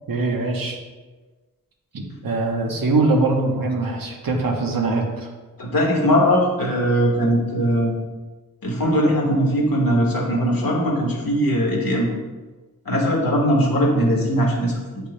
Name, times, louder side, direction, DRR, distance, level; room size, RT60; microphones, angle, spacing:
voice 1, 0.1-0.8 1.9-5.3, right 3 dB, 80° right, 1 dB, 1.0 m, -22 dB
voice 2, 5.6-7.9 8.6-12.1 12.8-15.0, equal, 85° left, -2 dB, 1.6 m, -20 dB
8.3 x 5.8 x 2.2 m, 1.3 s
wide cardioid pair, 90°, 34 cm